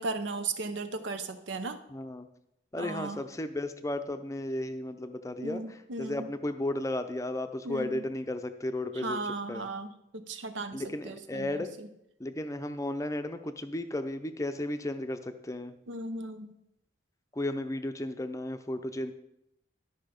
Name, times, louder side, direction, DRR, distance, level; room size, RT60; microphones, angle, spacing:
voice 1, 0.0-1.8 2.8-3.2 5.4-6.3 7.6-8.0 8.9-11.9 15.9-16.5, right 3 dB, 80° right, 9 dB, 0.8 m, -36 dB
voice 2, 1.9-2.3 2.7-9.2 9.5-9.7 10.7-11.7 12.2-15.8 17.3-19.1, left 1 dB, 15° left, 8 dB, 0.5 m, -34 dB
12.0 x 5.7 x 5.1 m, 0.83 s
head